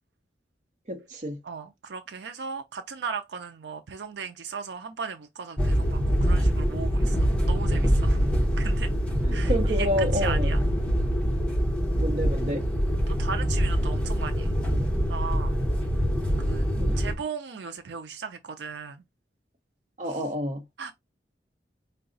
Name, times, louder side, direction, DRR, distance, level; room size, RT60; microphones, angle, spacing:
voice 1, 0.9-1.4 9.2-10.5 12.0-12.7 16.8-17.0 20.0-20.6, equal, 45° right, 0.9 m, -29 dB
voice 2, 1.4-8.2 8.6-8.9 9.3-9.9 10.1-10.6 13.1-14.5 15.1-15.5 16.4-16.6 17.0-19.0 20.1-20.2 20.8-20.9, right 6 dB, 80° right, 0.5 m, -37 dB
sound 1, 5.6-17.1, equal, 5° left, 0.8 m, -24 dB
4.7 x 2.3 x 3.8 m
head